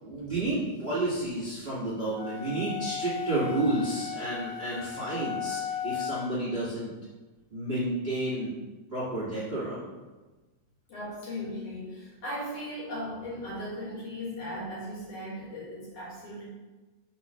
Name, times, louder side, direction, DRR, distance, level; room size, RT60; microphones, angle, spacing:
voice 1, 0.0-6.9 7.5-8.5 8.9-9.9, right 2 dB, 25° right, -9 dB, 1.5 m, -31 dB
sound 1, 2.1-6.4, left 9 dB, 85° left, 1.4 m, -36 dB
voice 2, 10.9-16.5, left 1 dB, 55° left, -7 dB, 2.5 m, -37 dB
4.8 x 3.7 x 5.6 m, 1.2 s
omnidirectional pair, 3.7 m